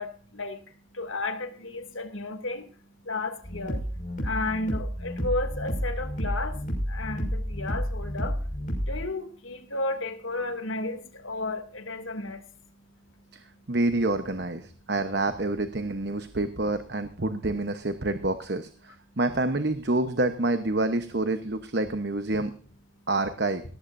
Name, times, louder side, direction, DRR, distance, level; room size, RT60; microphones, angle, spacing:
voice 1, 0.0-13.8 14.8-14.9 19.1-19.2 22.9-23.1, left 2 dB, 85° left, 7 dB, 2.7 m, -34 dB
sound 1, 3.4-9.0, equal, 40° left, 5.8 m, -31 dB
voice 2, 13.3-22.5 23.1-23.6, right 2 dB, 55° right, 9 dB, 1.1 m, -28 dB
18.5 x 15.0 x 2.7 m, 0.40 s
head